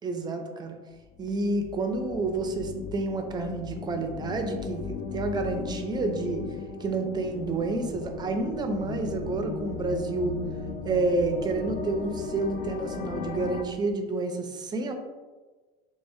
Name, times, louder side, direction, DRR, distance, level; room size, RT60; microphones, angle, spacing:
voice 1, 0.0-0.8 1.2-6.4 6.8-10.4 10.8-14.9, right 3 dB, 25° right, 5 dB, 0.4 m, -29 dB
sound 1, 1.0-13.6, left 6 dB, 40° left, 0.4 m, -37 dB
3.4 x 3.3 x 2.6 m, 1.3 s
cardioid pair, 130°, 19 cm